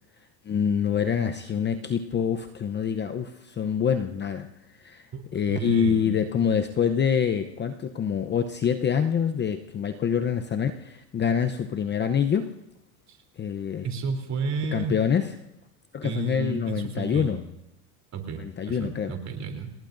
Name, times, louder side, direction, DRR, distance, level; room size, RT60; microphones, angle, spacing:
voice 1, 0.4-4.5 4.8-12.5 13.4-13.9 14.7-15.3 15.9-17.4 18.4-19.1, left 7 dB, 20° left, 8 dB, 0.8 m, -26 dB
voice 2, 5.5-6.1 13.1-13.2 13.8-15.0 16.0-17.4 18.1-19.7, right 5 dB, 35° right, 4 dB, 3.4 m, -32 dB
28.0 x 18.5 x 2.6 m, 0.90 s
supercardioid pair, 105°, 48 cm